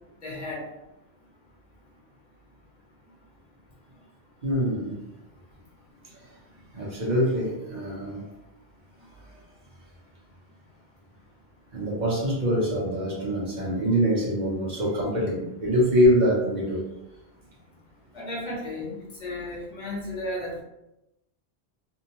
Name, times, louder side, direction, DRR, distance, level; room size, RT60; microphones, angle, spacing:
voice 1, 0.2-0.6 18.1-18.9 19.2-20.6, left 1 dB, 40° left, -4 dB, 0.9 m, -33 dB
voice 2, 4.4-4.9 6.7-8.2 11.7-16.8, equal, 50° right, -4 dB, 0.9 m, -24 dB
2.6 x 2.0 x 2.8 m, 0.91 s
omnidirectional pair, 1.1 m